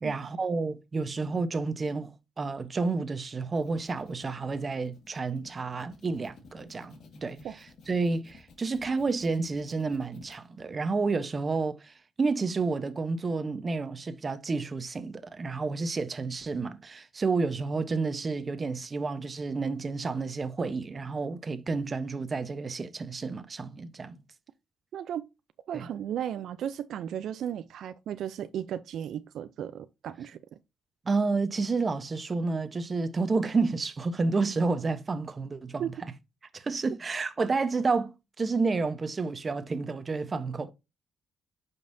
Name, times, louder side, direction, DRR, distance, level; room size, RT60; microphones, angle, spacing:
voice 1, 0.0-7.4 7.9-24.2 25.7-25.9 31.0-35.8 36.5-40.7, right 4 dB, 35° right, 1.0 m, -30 dB
sound 1, 3.3-10.4, left 3 dB, 70° left, 1.9 m, -53 dB
voice 2, 24.9-25.3 25.7-30.4 35.8-35.9, right 9 dB, 70° right, 0.5 m, -35 dB
9.1 x 5.4 x 2.7 m
cardioid pair, 90°, 0 cm